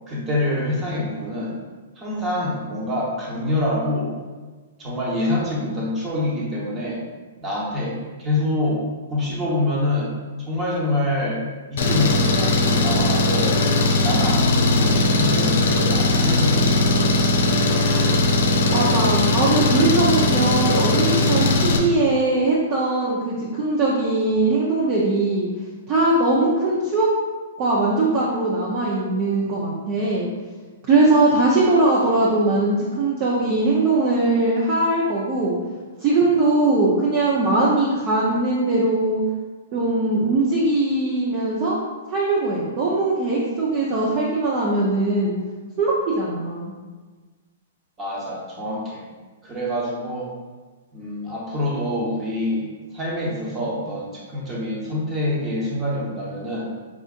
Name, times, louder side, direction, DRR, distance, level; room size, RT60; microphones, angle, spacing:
voice 1, 0.1-1.5 2.0-4.1 4.8-7.0 7.4-8.8 9.1-10.1 10.5-11.4 11.7-13.6 14.0-17.1 48.0-49.0 49.4-50.3 50.9-52.7 52.9-56.7, left 1 dB, 25° right, -4 dB, 1.1 m, -26 dB
Engine, 11.8-21.8, left 2 dB, 65° left, 0.5 m, -19 dB
voice 2, 18.7-25.5 25.9-27.1 27.6-30.3 30.9-35.6 36.0-39.2 39.7-41.8 42.1-45.4 45.8-46.7, right 2 dB, 40° right, -5 dB, 0.6 m, -20 dB
4.9 x 2.5 x 2.5 m, 1.4 s
hypercardioid pair, 125°, 0 cm